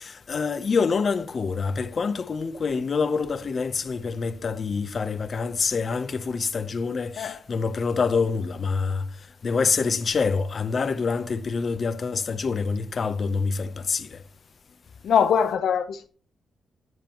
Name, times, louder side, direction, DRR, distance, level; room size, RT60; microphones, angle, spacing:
voice 1, 0.0-9.1 9.4-14.2, left 5 dB, 40° left, 0.8 m, -26 dB
voice 2, 15.0-16.1, left 7 dB, 75° left, 0.8 m, -22 dB
13.0 x 9.3 x 3.1 m
wide cardioid pair, 145°, 0 cm